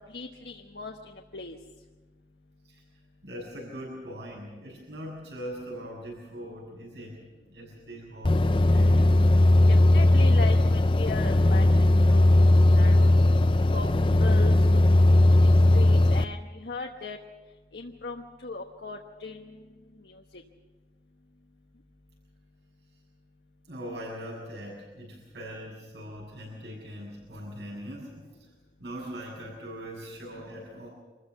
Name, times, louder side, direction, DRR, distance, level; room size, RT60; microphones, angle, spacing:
voice 1, 0.0-1.6 9.7-13.1 13.7-13.9 14.2-15.0 15.4-17.2 17.7-19.4 20.0-20.2, left 4 dB, 70° left, 3 dB, 1.1 m, -38 dB
voice 2, 3.2-7.2 7.5-9.3 23.7-28.5 28.8-30.9, equal, 75° right, -5 dB, 6.8 m, -41 dB
sound 1, 8.2-16.2, left 1 dB, 30° left, 0.5 m, -19 dB
25.5 x 14.5 x 7.0 m, 1.3 s
head